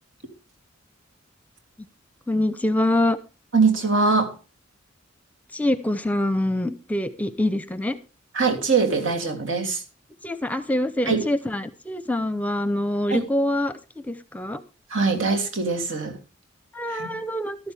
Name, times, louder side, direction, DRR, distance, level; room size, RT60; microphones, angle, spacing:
voice 1, 2.3-3.2 5.5-8.0 10.2-14.6 16.7-17.6, left 1 dB, 10° left, 12 dB, 0.7 m, -25 dB
voice 2, 3.5-4.3 8.3-9.8 11.0-11.3 13.1-13.2 14.9-16.2 16.9-17.1, right 4 dB, 80° right, 4 dB, 3.1 m, -22 dB
14.5 x 12.5 x 3.5 m, 0.31 s
head